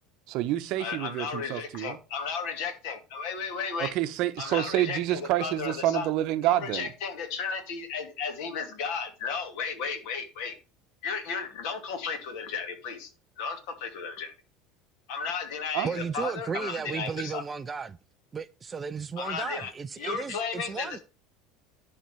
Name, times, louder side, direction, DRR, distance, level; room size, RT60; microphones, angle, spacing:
voice 1, 0.3-2.0 3.8-6.9 15.7-15.9, right 14 dB, 50° right, 0.9 m, -28 dB
voice 2, 0.8-3.9 4.4-6.1 6.5-10.5 11.0-13.1 13.4-14.3 15.1-17.4 19.2-19.7 20.0-21.0, left 5 dB, 60° left, 2.6 m, -34 dB
voice 3, 15.8-18.0 18.3-21.0, right 6 dB, 15° right, 0.3 m, -34 dB
10.5 x 4.2 x 6.8 m
cardioid pair, 170°, 0 cm